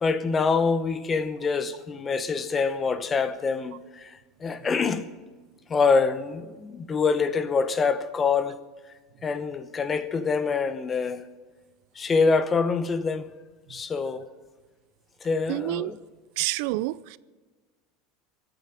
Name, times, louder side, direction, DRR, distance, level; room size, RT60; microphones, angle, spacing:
voice 1, 0.0-5.1 5.7-8.6 9.2-11.2 12.0-13.3 13.7-14.3 15.2-16.0, left 4 dB, 20° left, 0.9 m, -25 dB
voice 2, 15.5-15.9 16.4-17.2, right 18 dB, 65° right, 0.4 m, -28 dB
24.5 x 9.2 x 5.9 m
supercardioid pair, 155°, 0 cm